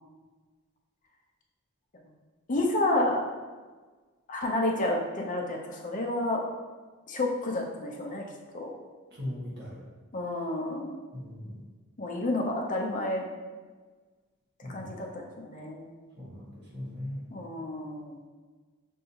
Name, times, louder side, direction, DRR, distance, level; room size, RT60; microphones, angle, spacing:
voice 1, 2.5-3.2 4.3-6.4 7.1-8.3 8.5-8.7 10.1-10.9 12.0-13.2 14.7-15.9 17.3-18.2, left 1 dB, 40° left, 0 dB, 0.6 m, -30 dB
voice 2, 9.1-9.8 11.1-11.6 14.6-14.9 16.2-17.3, left 1 dB, 50° right, -6 dB, 1.3 m, -39 dB
5.5 x 2.7 x 2.8 m, 1.4 s
head